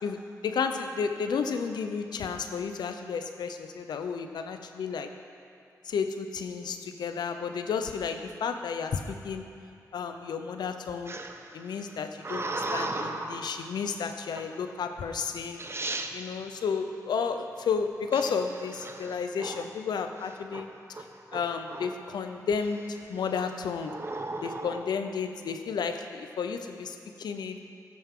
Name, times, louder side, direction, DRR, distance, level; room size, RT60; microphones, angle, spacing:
voice 1, 0.0-5.1 5.8-9.4 9.9-11.2 11.5-15.6 16.1-20.7 21.3-24.0 24.4-27.6, left 6 dB, 85° left, 7 dB, 0.7 m, -32 dB
sound 1, 11.1-13.6 14.3-14.7 15.3-15.4 15.6-16.1 18.1-19.8 20.2-20.6 20.9-22.1 22.6-23.0 23.8-24.9, right 2 dB, 35° right, 0.9 m, -36 dB
14.5 x 10.5 x 3.8 m, 2.5 s
cardioid pair, 45°, 7 cm